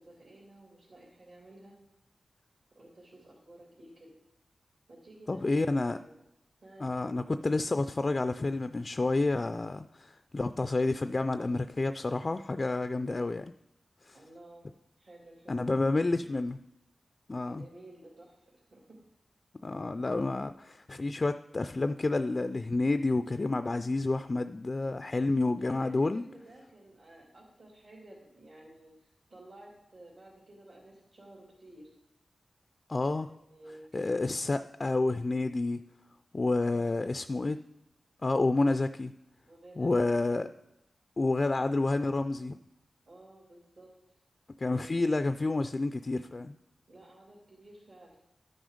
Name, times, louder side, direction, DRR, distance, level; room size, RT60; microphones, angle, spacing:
voice 1, 0.0-1.7 2.7-4.1 4.9-6.1 6.6-6.9 14.1-14.7 15.0-16.2 17.4-18.8 25.6-31.9 33.0-34.2 36.6-37.4 39.5-40.4 43.1-43.9 44.6-45.2 46.9-48.1, right 1 dB, 65° right, -6 dB, 3.0 m, -53 dB
voice 2, 5.3-6.0 6.8-13.5 14.0-14.2 15.5-16.6 17.3-17.6 19.6-26.2 32.9-33.3 33.9-35.8 36.3-37.6 38.2-39.1 39.8-40.5 41.2-42.6 44.6-46.5, left 2 dB, 40° left, 10 dB, 0.3 m, -29 dB
12.0 x 6.2 x 5.0 m, 0.86 s
wide cardioid pair, 85°, 0 cm